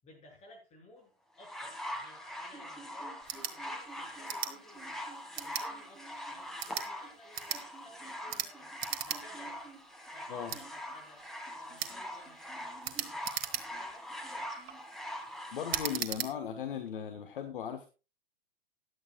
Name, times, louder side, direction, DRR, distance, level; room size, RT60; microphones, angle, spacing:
voice 1, 0.0-5.1 5.4-9.7 10.1-11.2 11.5-13.3 13.6-14.5, left 1 dB, 20° left, -1 dB, 7.7 m, -57 dB
sound 1, 1.4-16.0 16.9-17.0, equal, ahead, 1.9 m, -43 dB
sound 2, 3.2-3.6 4.3-4.5 5.3-5.7 6.5-6.9 7.3-7.6 8.3-8.5 8.8-9.2 9.6-9.7 10.5-10.6 11.8-12.0 12.8-13.9 14.5-14.8 15.7-16.3, right 10 dB, 35° right, 1.4 m, -36 dB
voice 2, 15.5-17.9, left 8 dB, 60° left, 6 dB, 1.6 m, -37 dB
15.5 x 11.0 x 2.4 m, 0.30 s
figure-of-eight pair, 110°, 30 cm